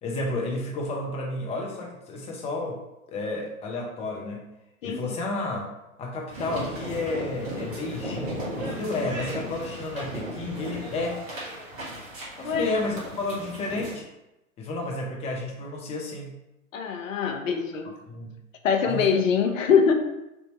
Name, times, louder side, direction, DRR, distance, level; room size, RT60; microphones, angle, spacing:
voice 1, 0.0-2.8 3.1-4.5 4.8-5.7 6.0-11.2 12.4-14.1 14.6-16.3 18.1-18.3 18.8-19.0, left 2 dB, 15° left, -1 dB, 0.6 m, -31 dB
voice 2, 4.8-5.2 12.4-12.7 16.7-17.9 18.6-19.9, left 6 dB, 65° left, 4 dB, 0.7 m, -23 dB
sound 1, 6.3-13.9, equal, 30° right, 1.4 m, -36 dB
3.4 x 2.7 x 4.1 m, 0.93 s
hypercardioid pair, 110°, 43 cm